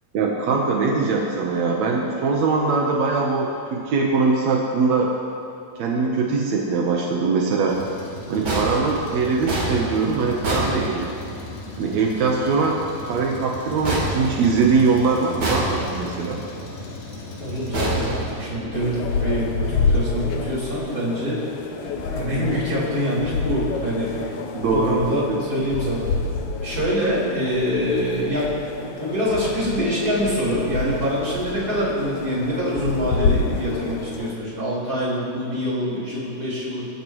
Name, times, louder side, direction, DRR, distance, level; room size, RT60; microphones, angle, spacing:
voice 1, 0.1-5.1 5.7-7.8 8.3-11.2 11.8-12.8 13.1-16.4 24.5-24.9 25.3-25.4, right 4 dB, 70° right, -1 dB, 1.7 m, -22 dB
Truck, 7.7-18.9, left 2 dB, 90° left, 4.5 m, -36 dB
sound 1, 8.4-11.5 13.8-14.9 15.4-16.2 17.7-18.8, right 1 dB, 40° right, 4.4 m, -27 dB
voice 2, 17.4-24.3 24.7-26.1 26.6-28.5 29.0-36.9, equal, 20° right, -6 dB, 5.0 m, -25 dB
sound 2, 18.7-34.3, left 4 dB, 75° left, 1.8 m, -28 dB
26.5 x 14.5 x 3.2 m, 2.5 s
omnidirectional pair, 4.8 m